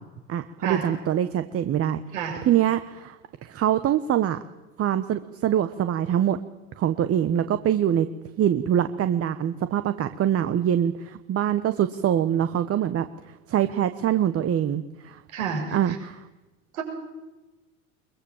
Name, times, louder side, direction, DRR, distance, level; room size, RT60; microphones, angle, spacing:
voice 1, 0.3-2.0 2.4-4.4 4.8-6.4 6.8-8.1 8.4-13.0 13.5-15.2 15.7-16.2, right 10 dB, 35° right, 11 dB, 1.3 m, -24 dB
voice 2, 2.1-2.4 15.3-16.0 16.7-16.8, right 7 dB, 75° right, 2 dB, 6.7 m, -29 dB
23.0 x 22.0 x 7.4 m, 1.1 s
hypercardioid pair, 85°, 42 cm